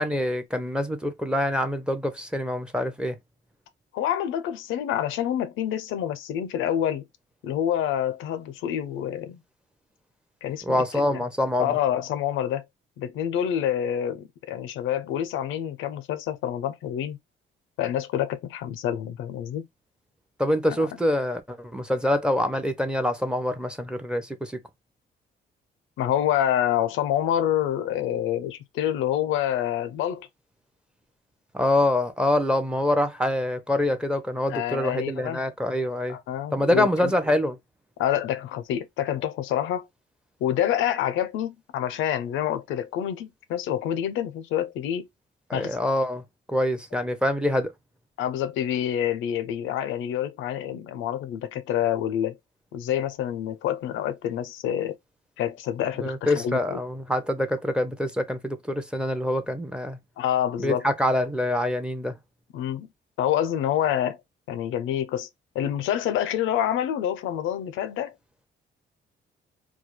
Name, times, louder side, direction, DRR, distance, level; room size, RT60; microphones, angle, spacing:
voice 1, 0.0-3.2 10.7-11.8 20.4-24.6 31.5-36.2 36.5-37.6 45.5-46.2 46.5-47.7 56.0-60.0 60.6-62.2, left 1 dB, 5° right, 0.5 m, -25 dB
voice 2, 3.9-7.0 7.4-9.4 10.4-11.2 11.6-12.6 13.0-17.2 17.8-19.7 20.8-20.9 26.0-30.3 34.5-35.4 36.1-37.1 38.0-39.9 40.4-45.1 45.5-45.8 48.2-52.4 52.7-55.0 55.4-56.8 60.2-60.9 62.5-62.9 63.2-64.2 64.5-65.3 65.5-68.1, left 10 dB, 85° left, 0.4 m, -27 dB
2.2 x 2.2 x 3.0 m
cardioid pair, 90°, 20 cm